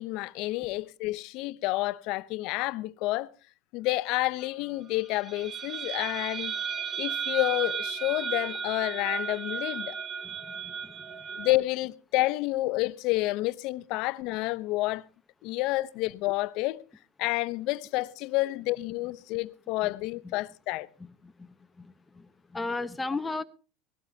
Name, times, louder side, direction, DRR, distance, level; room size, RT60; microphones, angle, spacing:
voice 1, 0.0-3.3 3.7-6.5 7.0-10.0 11.4-15.0 15.4-16.8 17.2-20.9, left 19 dB, 60° left, 0.8 m, -29 dB
sound 1, 5.0-11.5, right 6 dB, 25° right, 1.2 m, -34 dB
voice 2, 10.2-11.4 19.8-19.9 20.2-20.3 21.0-23.4, left 3 dB, 15° left, 1.0 m, -37 dB
19.0 x 16.5 x 2.8 m
supercardioid pair, 100°, 0 cm